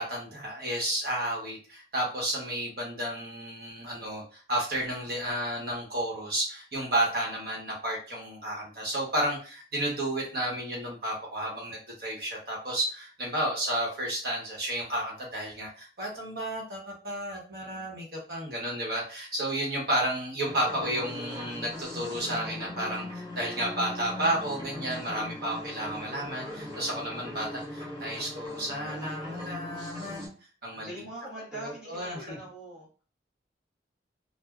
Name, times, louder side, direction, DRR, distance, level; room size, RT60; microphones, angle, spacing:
voice 1, 0.0-30.3 30.6-31.1 31.5-32.4, right 1 dB, 55° right, -3 dB, 1.0 m, -32 dB
voice 2, 17.6-17.9 30.7-32.9, right 1 dB, 5° right, -6 dB, 1.3 m, -43 dB
sound 1, 20.5-30.3, left 1 dB, 25° right, 1.1 m, -40 dB
3.2 x 2.1 x 2.3 m, 0.38 s
head